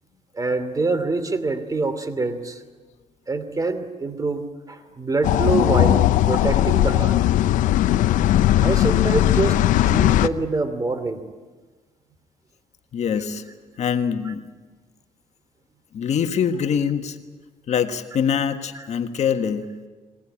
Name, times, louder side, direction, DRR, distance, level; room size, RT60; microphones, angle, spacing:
voice 1, 0.3-2.6 3.3-7.2 8.6-11.2 18.7-18.8, right 3 dB, 25° right, 9 dB, 2.7 m, -25 dB
sound 1, 5.2-10.3, left 13 dB, 80° left, 0.7 m, -18 dB
voice 2, 12.9-13.4 13.8-14.4 15.9-17.2 17.7-19.7, left 7 dB, 60° left, 8 dB, 1.6 m, -24 dB
22.5 x 18.5 x 9.9 m, 1.3 s
cardioid pair, 85°, 13 cm